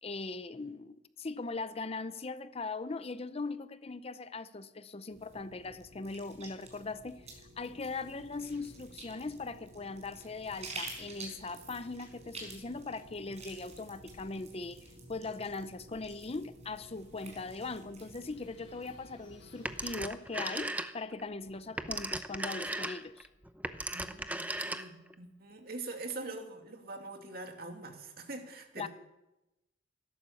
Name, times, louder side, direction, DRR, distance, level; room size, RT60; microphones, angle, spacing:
voice 1, 0.0-23.3 28.8-28.9, left 3 dB, 35° left, 0.6 m, -40 dB
sound 1, 5.1-20.1, right 2 dB, 40° right, 4.9 m, -50 dB
sound 2, 16.7-21.7, left 4 dB, 75° left, 5.9 m, -67 dB
Telephone, 19.7-21.2 21.6-25.1, right 1 dB, 10° right, 0.7 m, -37 dB
voice 2, 23.9-28.9, right 3 dB, 55° right, 2.3 m, -43 dB
16.5 x 12.0 x 7.2 m
head